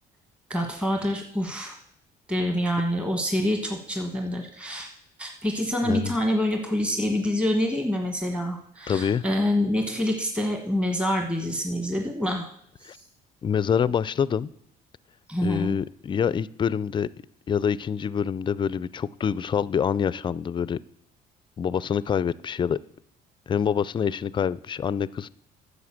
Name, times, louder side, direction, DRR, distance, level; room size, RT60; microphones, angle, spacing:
voice 1, 0.5-1.8 2.3-4.9 5.2-12.5 12.8-13.0 15.3-15.8, left 1 dB, 5° right, 3 dB, 1.3 m, -26 dB
voice 2, 8.9-9.2 12.8-13.0 13.4-14.5 15.4-17.1 17.5-20.8 21.6-22.8 23.5-25.3, left 7 dB, 30° left, 19 dB, 0.4 m, -26 dB
9.4 x 6.5 x 7.3 m, 0.70 s
cardioid pair, 110°, 17 cm